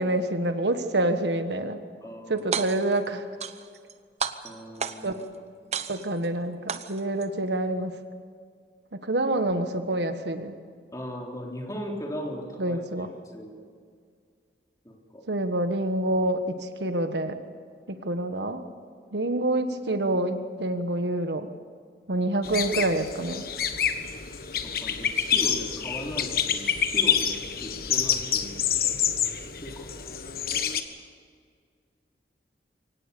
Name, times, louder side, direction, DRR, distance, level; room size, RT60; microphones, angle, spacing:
voice 1, 0.0-1.8 2.3-3.2 5.0-5.4 5.9-7.9 8.9-10.6 12.6-13.1 15.3-17.4 17.9-18.6 19.1-21.5 22.1-23.5, right 1 dB, 75° right, 8 dB, 1.4 m, -27 dB
voice 2, 2.0-2.5 4.4-5.2 10.9-12.8 13.3-13.6 14.9-15.3 24.6-28.8 29.6-30.0, equal, 20° left, 0 dB, 3.5 m, -38 dB
sound 1, 2.4-3.0 3.4-3.9 4.2-5.2 5.7-6.3 6.7-7.3, right 6 dB, 35° right, 0.9 m, -32 dB
sound 2, 22.4-30.8, left 8 dB, 55° left, 1.4 m, -27 dB
24.0 x 18.0 x 6.9 m, 2.1 s
head